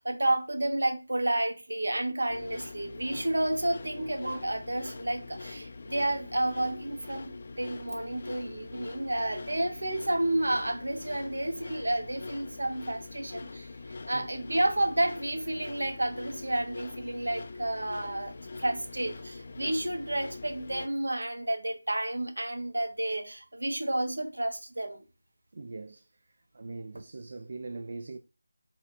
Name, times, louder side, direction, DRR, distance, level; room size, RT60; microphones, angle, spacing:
voice 1, 0.0-25.0, right 1 dB, 90° right, 1.2 m, -31 dB
sound 1, 2.3-20.9, left 3 dB, 35° left, 0.4 m, -43 dB
voice 2, 25.5-26.0 26.5-28.2, right 3 dB, 45° right, 0.4 m, -41 dB
4.4 x 2.5 x 4.0 m
figure-of-eight pair, 175°, 0 cm